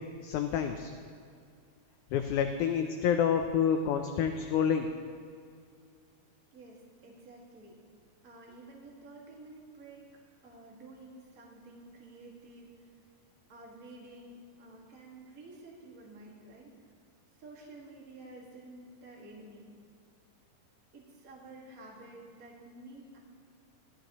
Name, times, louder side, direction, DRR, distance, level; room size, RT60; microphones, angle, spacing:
voice 1, 0.2-0.9 2.1-4.9, left 8 dB, 80° left, 6 dB, 1.8 m, -28 dB
voice 2, 6.5-7.8 8.2-10.1 10.4-12.9 13.5-16.8 17.3-19.7 20.9-23.2, right 2 dB, 35° right, -2 dB, 1.6 m, -51 dB
16.5 x 13.0 x 3.0 m, 2.3 s
omnidirectional pair, 4.0 m